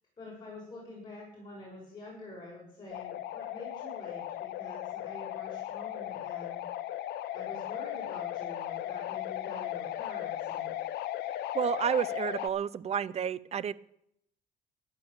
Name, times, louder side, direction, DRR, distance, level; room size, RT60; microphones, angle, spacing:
voice 1, 0.2-6.6 7.3-10.8, left 2 dB, 25° left, -4 dB, 7.0 m, -47 dB
sound 1, 2.9-12.5, left 13 dB, 75° left, 0.9 m, -37 dB
voice 2, 11.5-13.7, right 8 dB, 40° right, 17 dB, 0.7 m, -30 dB
13.0 x 11.0 x 7.0 m, 0.74 s
cardioid pair, 110°, 17 cm